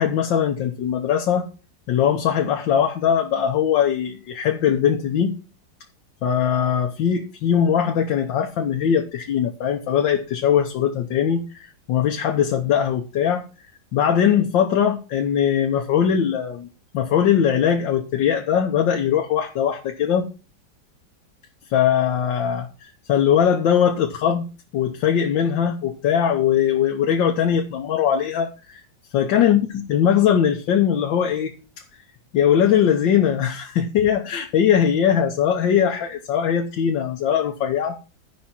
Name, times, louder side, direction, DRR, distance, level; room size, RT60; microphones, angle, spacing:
voice 1, 0.0-1.5 1.9-5.3 6.2-11.4 11.9-13.4 13.9-16.7 16.9-20.3 21.7-24.4 24.7-28.8 29.1-31.5 32.3-38.0, left 8 dB, 85° left, 3 dB, 1.7 m, -20 dB
14.0 x 5.3 x 4.3 m, 0.34 s
omnidirectional pair, 2.0 m